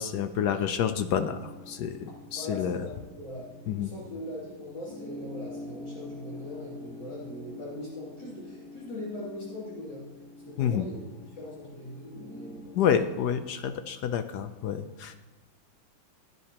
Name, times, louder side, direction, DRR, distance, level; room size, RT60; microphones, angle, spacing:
voice 1, 0.0-2.8 3.7-3.9 10.6-10.9 12.7-15.2, left 8 dB, 75° left, 9 dB, 0.9 m, -29 dB
sound 1, 1.1-12.6, left 1 dB, 15° left, 3.1 m, -46 dB
voice 2, 2.4-3.5 3.8-10.1 10.5-11.0 11.3-12.8, left 1 dB, 55° left, -7 dB, 3.3 m, -40 dB
16.0 x 9.5 x 2.9 m, 1.2 s
omnidirectional pair, 2.3 m